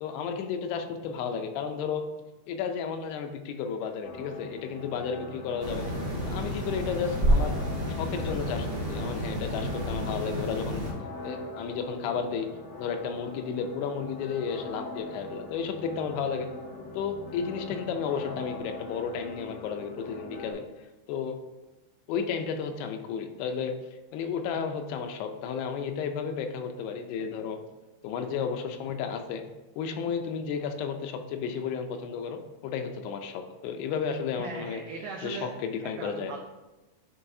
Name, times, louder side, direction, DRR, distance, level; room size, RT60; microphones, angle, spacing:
voice 1, 0.0-2.0 2.5-5.9 6.2-7.6 7.9-10.9 11.2-12.5 12.8-16.5 16.9-20.6 21.1-21.4 22.1-23.8 24.1-27.6 28.0-29.4 29.8-34.8 35.2-36.3, left 6 dB, 85° left, 5 dB, 2.6 m, -33 dB
sound 1, 4.0-20.5, left 2 dB, 65° left, 2.8 m, -42 dB
sound 2, 5.6-10.9, equal, 40° right, 2.0 m, -29 dB
voice 2, 34.4-35.5 35.8-36.4, right 4 dB, 85° right, 1 dB, 2.0 m, -39 dB
10.0 x 4.0 x 2.6 m, 1.1 s
omnidirectional pair, 4.7 m